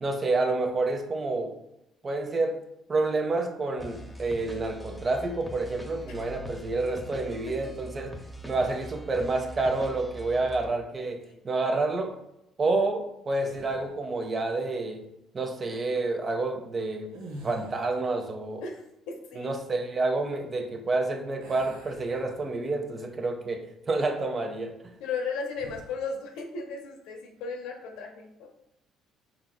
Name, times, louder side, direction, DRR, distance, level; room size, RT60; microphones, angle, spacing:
voice 1, 0.0-1.5 2.0-2.6 2.9-8.1 8.5-11.2 11.4-12.2 12.6-15.0 15.3-17.1 17.4-18.6 19.4-24.7, right 3 dB, 40° right, 5 dB, 0.6 m, -29 dB
sound 1, 3.8-10.7, right 1 dB, 5° left, 0.7 m, -43 dB
sound 2, 13.5-14.1 17.0-18.1 21.4-22.8 23.3-23.5 25.5-26.0, right 1 dB, 85° right, 0.6 m, -46 dB
voice 2, 18.6-19.5 25.0-28.5, left 4 dB, 80° left, 2 dB, 0.6 m, -36 dB
3.9 x 3.0 x 2.2 m, 0.85 s
supercardioid pair, 65°, 0 cm